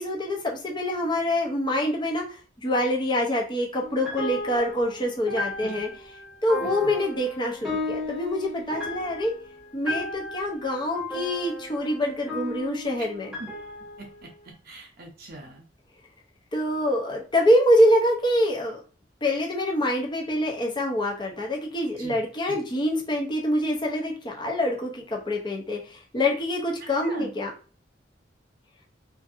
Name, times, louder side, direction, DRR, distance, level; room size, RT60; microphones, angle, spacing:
voice 1, 0.0-5.9 6.4-9.3 9.7-13.3 16.5-18.8 19.2-27.5, left 1 dB, 25° left, 0 dB, 0.5 m, -25 dB
sound 1, 3.8-14.4, left 2 dB, 5° right, 0.8 m, -35 dB
voice 2, 5.6-6.0 6.6-6.9 13.0-13.1 13.4-13.5 14.0-15.6 22.0-22.6 27.0-27.3, right 2 dB, 55° right, 1 dB, 0.6 m, -42 dB
2.6 x 2.5 x 2.4 m, 0.37 s
head